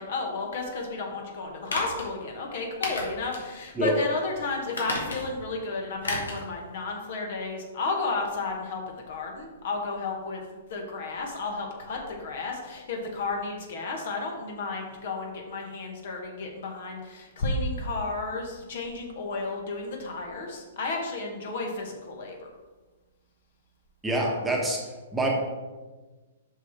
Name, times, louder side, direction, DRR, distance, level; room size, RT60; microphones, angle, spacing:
voice 1, 0.0-10.4 10.7-22.5, left 3 dB, 50° left, 1 dB, 1.7 m, -32 dB
sound 1, 1.7-2.1 2.8-3.5 3.9-4.0 4.7-5.4 6.0-6.4 6.8-6.9, left 2 dB, 65° left, 1.9 m, -33 dB
voice 2, 24.0-24.8 25.1-25.3, right 1 dB, 10° right, -1 dB, 1.3 m, -25 dB
6.7 x 6.1 x 4.6 m, 1.3 s
figure-of-eight pair, 115°, 0 cm